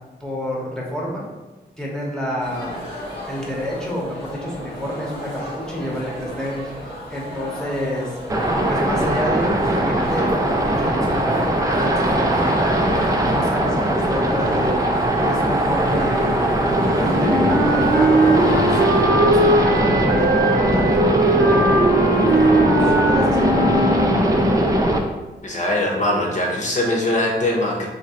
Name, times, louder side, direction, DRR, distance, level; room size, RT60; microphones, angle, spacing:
voice 1, 0.2-1.2 1.8-2.8 3.3-8.1 8.7-14.8 15.2-16.4 16.8-20.9 21.3-21.8 22.1-24.2, equal, 5° left, -4 dB, 0.9 m, -29 dB
sound 1, 2.4-19.0, left 1 dB, 85° left, 1.4 m, -34 dB
sound 2, 8.3-25.0, right 1 dB, 20° right, 0.4 m, -20 dB
Wind instrument woodwind instrument, 17.0-24.4, right 2 dB, 75° right, 0.7 m, -20 dB
voice 2, 25.4-27.9, left 1 dB, 45° left, -1 dB, 0.9 m, -21 dB
4.0 x 2.8 x 2.9 m, 1.1 s
wide cardioid pair, 120°, 17 cm